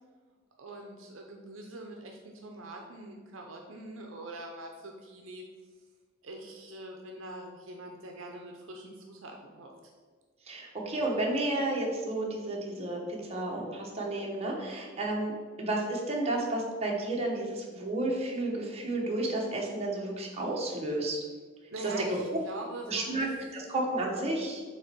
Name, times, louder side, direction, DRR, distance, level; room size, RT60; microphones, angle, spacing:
voice 1, 0.6-5.4 6.2-9.7 21.7-23.3, right 2 dB, 70° right, 2 dB, 0.7 m, -43 dB
voice 2, 10.5-21.2 21.8-21.9 22.9-23.3 23.5-24.6, right 2 dB, 30° right, -2 dB, 1.1 m, -32 dB
7.5 x 3.0 x 4.4 m, 1.5 s
head